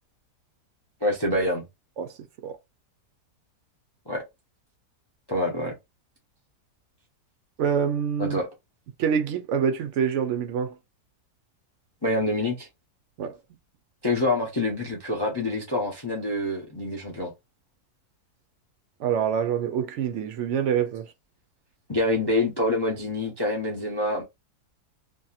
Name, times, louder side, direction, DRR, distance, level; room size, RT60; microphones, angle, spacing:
voice 1, 1.0-1.6 4.1-4.2 5.3-5.8 8.2-8.5 12.0-12.7 14.0-17.3 21.9-24.2, left 1 dB, 35° left, 0.4 m, -26 dB
voice 2, 7.6-8.4 9.0-10.7 13.2-13.3 19.0-21.1, right 7 dB, 70° right, 0.7 m, -26 dB
2.8 x 2.7 x 2.4 m
omnidirectional pair, 1.7 m